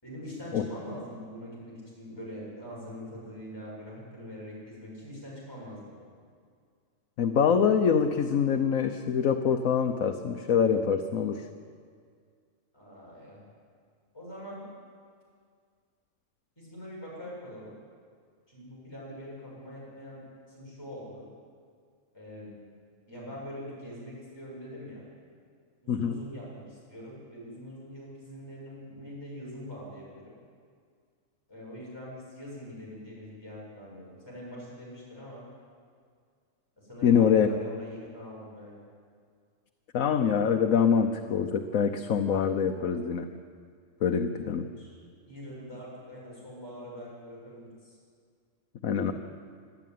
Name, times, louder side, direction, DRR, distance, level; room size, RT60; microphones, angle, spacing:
voice 1, 0.0-6.0 12.7-13.4 14.1-14.6 16.6-17.7 18.5-20.2 20.5-21.3 22.1-22.5 23.1-25.0 25.8-30.3 31.5-35.4 36.8-38.7 44.2-45.0 45.3-48.0, equal, 20° left, -6 dB, 6.9 m, -43 dB
voice 2, 7.2-11.4 25.9-26.2 37.0-37.5 39.9-43.3 44.0-44.7 48.8-49.1, left 7 dB, 80° left, 5 dB, 1.3 m, -24 dB
25.5 x 11.5 x 9.3 m, 2.1 s
omnidirectional pair, 1.4 m